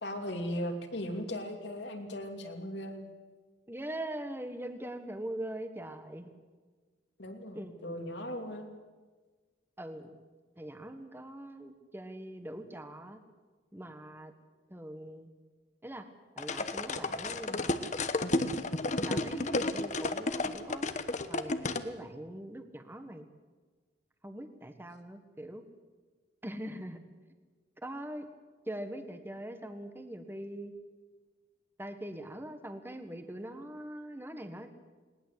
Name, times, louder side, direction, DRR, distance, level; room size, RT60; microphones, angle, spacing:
voice 1, 0.0-3.0 7.2-8.7, equal, 75° left, 4 dB, 2.8 m, -38 dB
voice 2, 3.7-6.3 7.5-8.0 9.8-10.2 10.6-13.2 13.7-14.3 14.7-15.3 15.8-16.0 16.3-17.9 19.0-20.9 21.3-23.2 24.2-25.6 26.4-27.0 27.8-28.3 28.6-30.7 31.8-34.7, right 1 dB, 10° right, 8 dB, 1.4 m, -42 dB
sound 1, 16.4-21.9, left 2 dB, 40° left, 1.1 m, -32 dB
20.5 x 19.0 x 8.2 m, 1.4 s
head